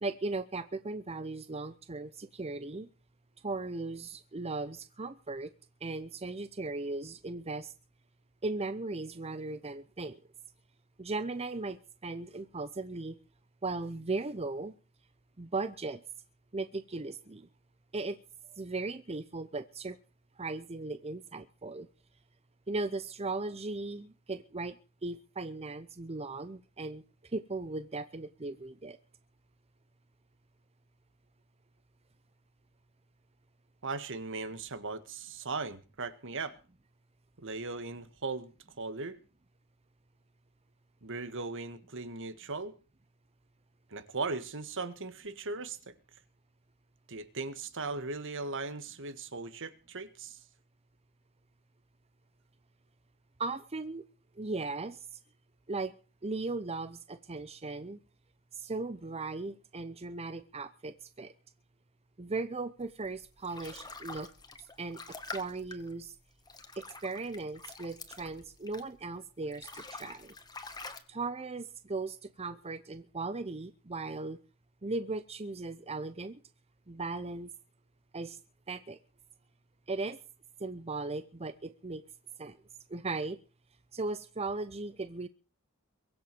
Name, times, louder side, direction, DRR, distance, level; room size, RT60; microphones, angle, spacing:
voice 1, 0.0-2.9 3.4-5.5 5.8-7.7 8.4-10.2 11.0-13.2 13.6-14.7 15.4-16.0 16.5-17.5 17.9-18.2 18.5-20.0 20.4-21.9 22.7-24.8 25.0-29.0 53.4-54.0 54.4-55.2 55.7-56.0 56.2-58.0 58.5-61.3 62.2-64.3 64.6-66.2 66.7-70.3 71.1-74.4 74.8-76.4 76.9-77.5 78.1-78.4 78.7-79.0 79.9-80.2 80.6-82.0 82.4-82.6 82.9-83.4 83.9-85.3, right 3 dB, 30° right, 0.8 m, -37 dB
voice 2, 33.8-36.6 37.4-38.5 38.8-39.2 41.0-42.7 43.9-45.9 47.1-50.4, right 3 dB, 60° right, 1.8 m, -38 dB
sound 1, 63.0-69.1 69.4-71.0, left 3 dB, 20° left, 2.0 m, -46 dB
23.0 x 7.8 x 6.9 m
head